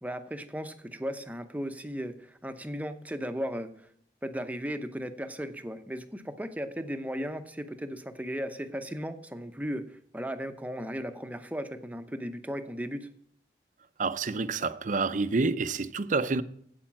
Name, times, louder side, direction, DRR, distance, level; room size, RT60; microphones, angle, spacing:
voice 1, 0.0-3.7 4.2-13.1, equal, 10° right, 0.7 m, -36 dB
voice 2, 14.0-16.4, right 3 dB, 45° right, 0.6 m, -28 dB
8.7 x 8.4 x 6.0 m
head